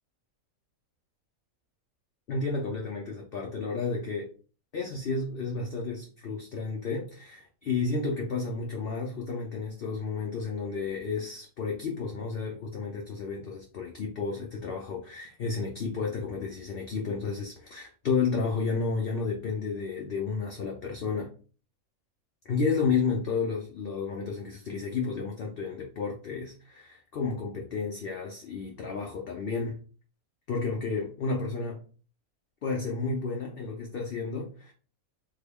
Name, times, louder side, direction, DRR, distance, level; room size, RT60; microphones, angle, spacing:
voice 1, 2.3-4.3 4.7-21.3 22.5-29.8 30.5-31.8 32.6-34.7, left 4 dB, 60° left, 1 dB, 0.6 m, -32 dB
3.6 x 2.2 x 3.4 m, 0.39 s
omnidirectional pair, 1.5 m